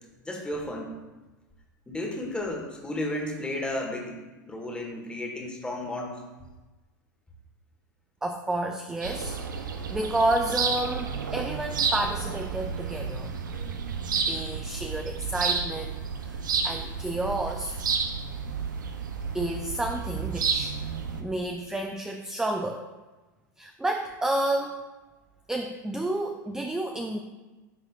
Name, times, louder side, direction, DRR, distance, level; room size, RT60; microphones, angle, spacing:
voice 1, 0.2-0.9 1.9-4.2 4.5-6.2, left 1 dB, 10° left, 0 dB, 1.3 m, -33 dB
voice 2, 8.2-13.3 14.3-17.8 19.3-20.8 21.2-22.8 23.6-24.8 25.5-27.2, right 1 dB, 5° right, 4 dB, 0.4 m, -30 dB
sound 1, 9.0-21.2, right 5 dB, 85° right, 0.6 m, -31 dB
10.0 x 3.9 x 2.4 m, 1.2 s
hypercardioid pair, 95°, 10 cm